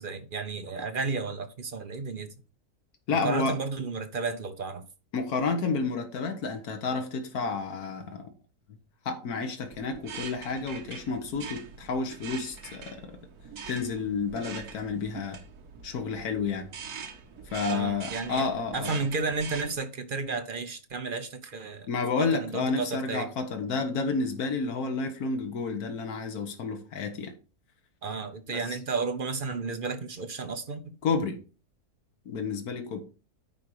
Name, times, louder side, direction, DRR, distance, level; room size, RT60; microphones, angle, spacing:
voice 1, 0.0-2.3 3.1-4.9 17.7-18.5 18.7-21.9 22.2-23.3 28.0-31.0, right 4 dB, 45° right, 0.8 m, -32 dB
voice 2, 3.1-3.5 5.1-8.3 9.0-13.2 13.7-15.4 15.8-16.7 17.5-19.0 21.9-27.3 28.5-28.6 31.0-31.4 32.2-33.0, left 4 dB, 75° left, 1.7 m, -30 dB
sound 1, 9.6-19.7, right 6 dB, 75° right, 1.8 m, -43 dB
10.0 x 4.2 x 4.8 m
omnidirectional pair, 1.6 m